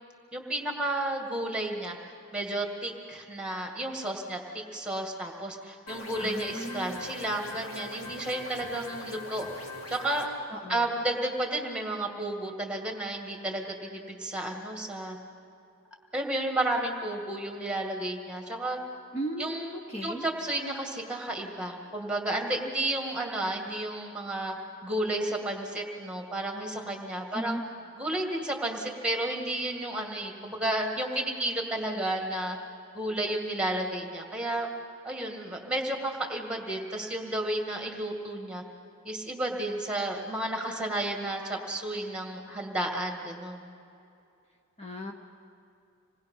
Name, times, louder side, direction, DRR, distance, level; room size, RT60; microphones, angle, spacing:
voice 1, 0.3-2.0 2.3-10.3 10.7-15.2 16.1-18.8 19.4-24.6 24.8-27.6 28.0-32.6 32.9-34.7 35.0-38.6 39.0-43.6, right 1 dB, 5° right, 2 dB, 2.0 m, -32 dB
sound 1, 5.9-10.3, left 2 dB, 80° left, 2.6 m, -41 dB
voice 2, 6.2-7.0 10.5-10.9 19.1-20.2 27.3-27.6 44.8-45.1, right 1 dB, 30° left, 1 dB, 1.0 m, -36 dB
26.5 x 19.5 x 5.6 m, 2.6 s
head